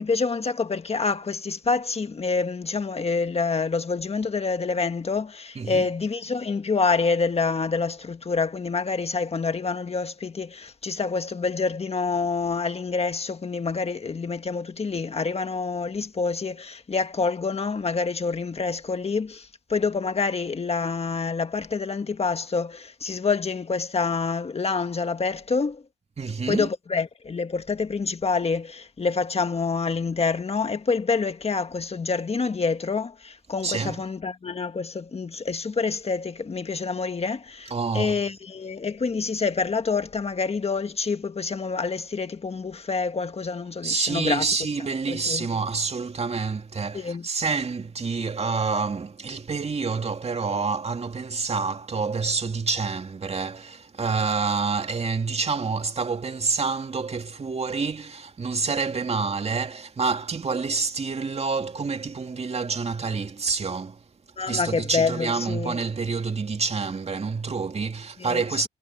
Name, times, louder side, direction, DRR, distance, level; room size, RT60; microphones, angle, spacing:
voice 1, 0.0-25.8 26.5-44.4 45.1-45.5 46.9-47.2 64.4-65.8 68.2-68.7, left 4 dB, 30° left, 1.7 m, -27 dB
voice 2, 5.6-5.9 26.2-26.7 33.6-34.0 37.7-38.2 43.8-64.0 64.5-68.7, right 4 dB, 30° right, 2.4 m, -28 dB
cardioid pair, 90°, 20 cm